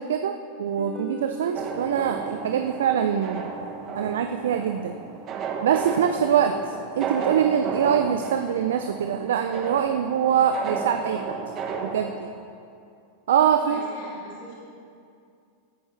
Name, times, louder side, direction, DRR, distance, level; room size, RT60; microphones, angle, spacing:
voice 1, 0.0-3.5 4.0-5.0 5.6-6.5 7.0-11.2 11.8-12.3 13.3-13.8, right 8 dB, 70° right, 7 dB, 0.5 m, -24 dB
sound 1, 0.7-7.2, equal, 20° left, 1.0 m, -43 dB
sound 2, 1.5-12.1, right 5 dB, 40° right, 1.4 m, -33 dB
voice 2, 13.6-14.6, equal, 55° left, -5 dB, 3.0 m, -41 dB
17.0 x 8.8 x 3.3 m, 2.4 s
hypercardioid pair, 95°, 0 cm